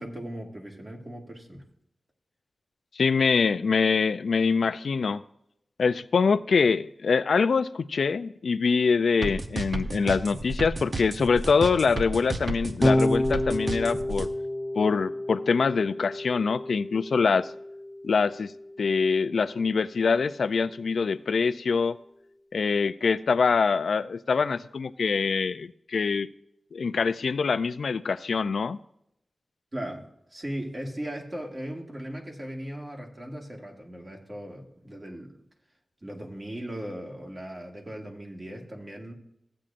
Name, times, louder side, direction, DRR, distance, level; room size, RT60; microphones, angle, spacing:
voice 1, 0.0-1.6 29.7-30.0 30.3-35.4 36.0-39.1, right 1 dB, 30° right, 0 dB, 1.9 m, -38 dB
voice 2, 3.0-5.2 5.8-14.3 14.8-17.5 18.0-18.5 18.8-22.0 22.5-26.3 26.7-28.8, left 5 dB, 85° left, 13 dB, 0.3 m, -24 dB
sound 1, 9.2-14.3, right 2 dB, 45° right, 0.8 m, -31 dB
Electric guitar / Bass guitar, 12.8-19.2, left 1 dB, 10° left, 0.6 m, -29 dB
15.0 x 8.6 x 2.6 m, 0.76 s
wide cardioid pair, 100°, 0 cm